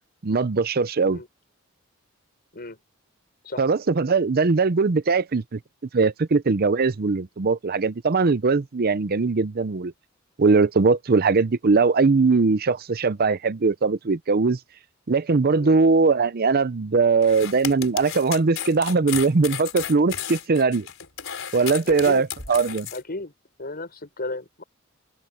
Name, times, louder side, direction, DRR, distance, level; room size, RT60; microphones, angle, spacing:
voice 1, 0.2-1.2 3.6-5.6 5.9-9.9 10.4-14.6 15.1-20.9 21.5-22.9, right 4 dB, 50° right, 0.6 m, -20 dB
sound 1, 17.2-23.0, left 9 dB, 70° left, 4.9 m, -34 dB
voice 2, 21.8-22.3 22.9-23.3 23.6-24.6, left 2 dB, 50° left, 6.1 m, -34 dB
open air
head